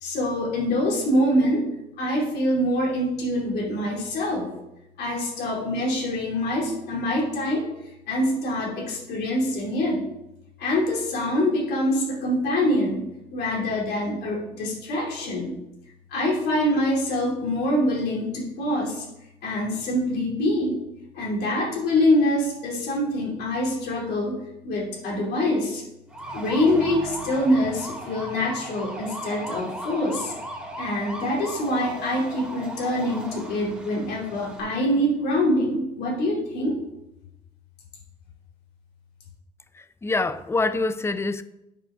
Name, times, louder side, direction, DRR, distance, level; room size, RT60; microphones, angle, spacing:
voice 1, 0.0-1.6 2.0-4.5 5.0-7.7 8.1-10.0 10.6-13.1 13.3-15.5 16.1-19.1 19.4-20.8 21.1-24.4 24.6-25.8 26.3-30.3 30.8-36.8, left 1 dB, 75° left, 2.8 m, -25 dB
sound 1, 26.1-34.6, right 1 dB, 5° right, 2.5 m, -37 dB
voice 2, 39.7-41.4, left 3 dB, 15° left, 0.5 m, -25 dB
9.0 x 4.8 x 5.6 m
cardioid pair, 110°, 17 cm